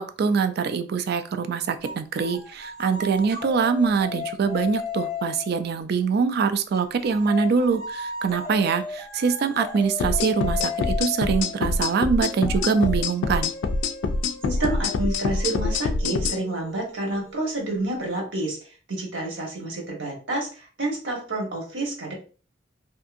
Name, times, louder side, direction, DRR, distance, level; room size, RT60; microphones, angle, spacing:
voice 1, 0.0-10.7 11.0-13.5, right 5 dB, 55° right, 10 dB, 0.3 m, -24 dB
sound 1, 1.8-5.7 6.7-18.0, left 4 dB, 20° left, 0.6 m, -36 dB
sound 2, 10.0-16.4, left 3 dB, 80° left, 0.3 m, -25 dB
voice 2, 14.4-22.1, right 2 dB, 80° right, 0 dB, 1.1 m, -29 dB
2.6 x 2.5 x 2.5 m, 0.37 s
head